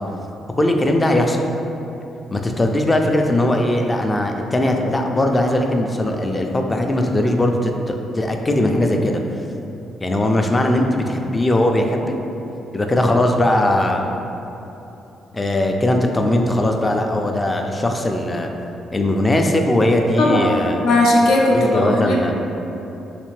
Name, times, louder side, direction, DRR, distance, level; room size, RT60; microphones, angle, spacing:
voice 1, 0.6-1.4 2.3-9.2 10.0-12.1 12.7-14.1 15.3-18.5 18.9-20.8 21.5-22.3, left 1 dB, 20° left, 3 dB, 0.3 m, -19 dB
voice 2, 20.2-20.5 20.8-22.2, left 1 dB, 85° left, -2 dB, 0.6 m, -16 dB
3.4 x 3.2 x 3.1 m, 3.0 s
cardioid pair, 90°, 0 cm